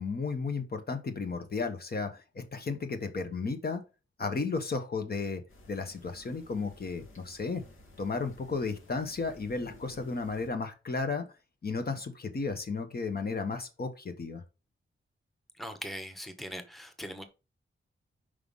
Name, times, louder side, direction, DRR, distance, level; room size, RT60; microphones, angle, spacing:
voice 1, 0.0-3.8 4.2-5.4 5.7-7.6 8.0-11.2 11.6-14.4, left 4 dB, 50° left, 1.3 m, -34 dB
sound 1, 5.5-10.5, left 1 dB, 85° left, 2.4 m, -55 dB
voice 2, 15.6-17.3, equal, ahead, 1.0 m, -40 dB
5.7 x 5.1 x 5.5 m
wide cardioid pair, 150°, 21 cm